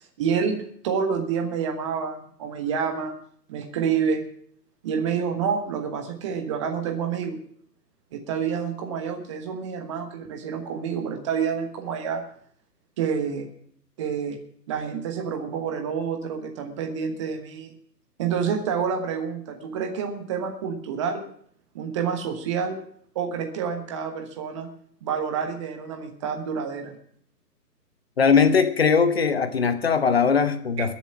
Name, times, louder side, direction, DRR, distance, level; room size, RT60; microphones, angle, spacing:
voice 1, 0.2-0.6 0.8-3.1 3.5-4.2 4.8-7.4 8.1-12.2 13.0-13.5 14.0-14.4 14.7-17.7 18.2-21.2 21.7-22.8 23.1-24.7 25.0-27.0 30.8-30.9, right 6 dB, 20° right, 1.2 m, -28 dB
voice 2, 28.2-30.9, left 5 dB, 40° left, 1.0 m, -20 dB
21.0 x 7.3 x 6.0 m
figure-of-eight pair, 135°, 50 cm